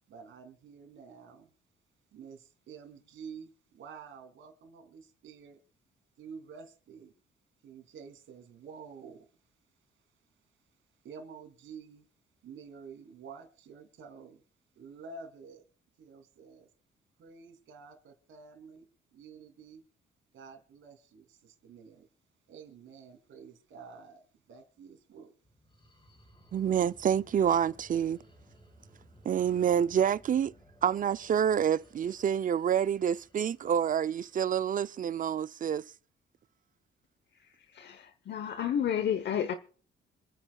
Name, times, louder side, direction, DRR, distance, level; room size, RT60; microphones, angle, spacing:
voice 1, 0.1-1.5 2.1-5.6 6.2-7.1 7.6-9.3 11.0-12.0 12.4-14.4 14.7-15.6 16.0-16.7 17.2-19.8 20.3-22.1 22.5-24.2 24.5-25.3, right 5 dB, 75° right, 3.0 m, -49 dB
sound 1, 25.4-35.2, right 1 dB, 25° left, 4.1 m, -59 dB
voice 2, 26.5-28.2 29.2-30.5 30.8-35.8, right 8 dB, 45° right, 0.5 m, -27 dB
voice 3, 37.7-39.5, left 9 dB, 60° left, 1.0 m, -31 dB
27.0 x 9.9 x 2.3 m
cardioid pair, 90°, 20 cm